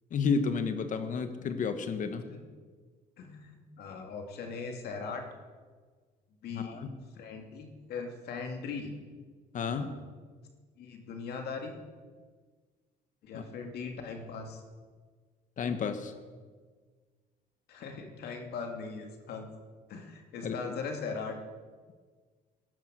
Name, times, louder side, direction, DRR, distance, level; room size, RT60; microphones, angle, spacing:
voice 1, 0.1-2.2 6.5-6.9 9.5-9.9 13.3-13.4 15.6-16.1 20.4-20.7, left 5 dB, 50° left, 9 dB, 1.4 m, -31 dB
voice 2, 3.2-5.2 6.4-6.8 7.2-8.9 9.7-9.9 10.8-11.8 13.2-14.6 17.7-19.5 19.9-21.4, left 5 dB, 70° left, 3 dB, 2.4 m, -39 dB
15.0 x 11.0 x 6.3 m, 1.5 s
cardioid pair, 110°, 17 cm